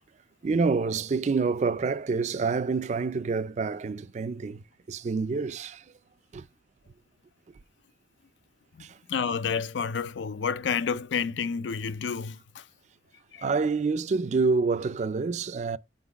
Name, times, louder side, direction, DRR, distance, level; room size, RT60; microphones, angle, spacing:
voice 1, 0.4-5.8 6.3-6.4 8.8-9.0 13.4-15.8, right 4 dB, 40° right, 0.3 m, -27 dB
voice 2, 8.7-12.6 13.3-13.5, left 6 dB, 90° left, 0.5 m, -30 dB
5.8 x 4.0 x 5.8 m
head